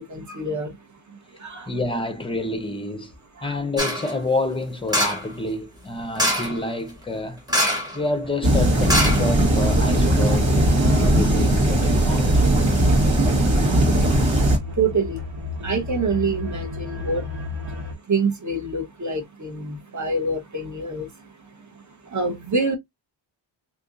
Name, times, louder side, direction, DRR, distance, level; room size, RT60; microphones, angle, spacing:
voice 1, 0.1-0.7 1.4-1.7 3.4-3.5 14.8-15.2 15.6-17.2 18.1-21.1 22.1-22.8, right 3 dB, 35° right, 0.9 m, -25 dB
voice 2, 1.7-3.1 3.4-7.4 7.9-12.6, left 2 dB, 10° left, 0.5 m, -28 dB
sound 1, 3.8-4.1 4.9-5.3 6.1-6.6 7.5-8.0 8.2-8.3 8.9-9.7 10.2-10.3, equal, 10° right, 1.0 m, -23 dB
sound 2, 8.2-17.9, left 3 dB, 85° right, 1.6 m, -36 dB
sound 3, 8.4-14.6, right 1 dB, 65° right, 1.5 m, -18 dB
2.8 x 2.6 x 3.7 m
wide cardioid pair, 170°, 49 cm